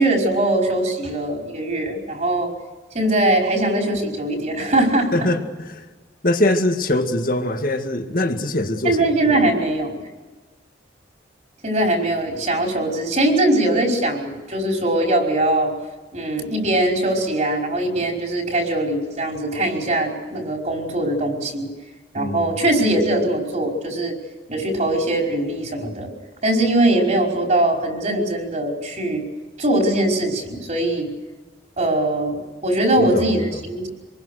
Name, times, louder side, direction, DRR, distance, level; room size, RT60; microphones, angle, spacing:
voice 1, 0.0-2.5 2.9-5.1 8.8-10.0 11.6-15.7 16.1-21.7 22.1-24.2 24.5-26.1 26.4-29.3 29.6-31.1 31.8-33.9, right 1 dB, 40° right, 5.2 m, -21 dB
voice 2, 5.1-5.8 6.2-9.1 22.1-22.5 33.0-33.6, left 1 dB, 50° left, 2.0 m, -23 dB
27.0 x 20.5 x 6.5 m
head